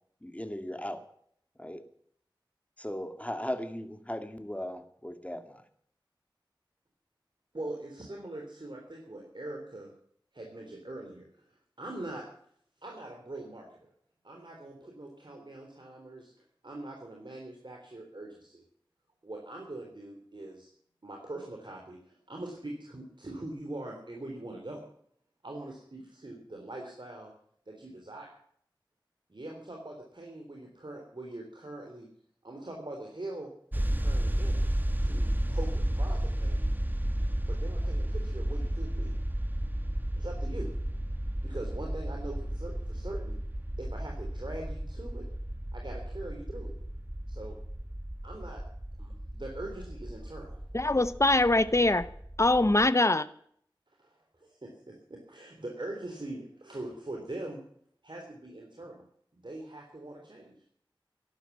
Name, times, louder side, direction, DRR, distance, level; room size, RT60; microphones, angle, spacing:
voice 1, 0.2-1.0 1.6-1.8 2.8-5.6, left 1 dB, 15° left, 2.2 m, -37 dB
voice 2, 7.5-9.9 10.3-11.4 11.8-12.2 12.8-13.9 14.2-16.3 16.6-18.6 19.2-20.7 21.0-24.8 25.4-27.3 27.7-28.3 29.3-32.1 32.4-33.5 33.8-34.6 35.0-36.7 37.5-39.1 40.2-40.7 41.4-43.4 43.8-45.3 45.7-46.7 47.3-47.6 48.2-48.6 49.0-50.6 54.0-57.6 58.0-59.0 59.3-60.5, right 2 dB, 65° right, 3.5 m, -42 dB
sound 1, 33.7-52.9, right 1 dB, 20° right, 1.3 m, -33 dB
voice 3, 50.7-52.1 52.4-53.3, left 2 dB, 35° left, 0.8 m, -23 dB
14.5 x 11.5 x 7.2 m
wide cardioid pair, 45°, 9 cm